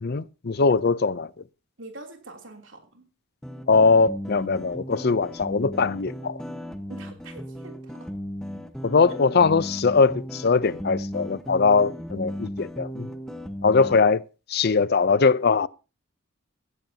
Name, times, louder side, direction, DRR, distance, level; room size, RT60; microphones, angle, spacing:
voice 1, 0.0-1.3 3.7-6.4 8.8-13.1 13.6-14.2 14.5-15.7, left 4 dB, 50° left, 0.5 m, -21 dB
voice 2, 1.8-3.1 6.9-8.1, right 2 dB, 60° right, 3.2 m, -44 dB
sound 1, 3.4-14.0, equal, 5° left, 1.2 m, -36 dB
16.5 x 15.5 x 2.8 m
head